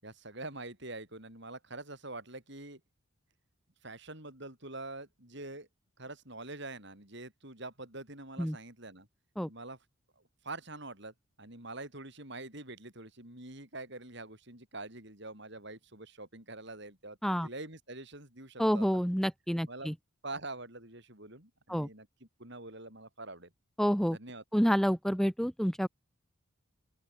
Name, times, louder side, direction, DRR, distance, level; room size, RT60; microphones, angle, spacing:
voice 1, 0.0-2.8 3.8-5.7 6.0-9.1 9.5-9.8 10.4-17.2 17.4-18.9 19.7-19.9 20.2-23.5 24.1-24.4, right 2 dB, 55° right, 7.0 m, -45 dB
voice 2, 18.6-19.9 21.7-21.9 23.8-24.2 24.5-25.9, equal, ahead, 3.9 m, -28 dB
open air
head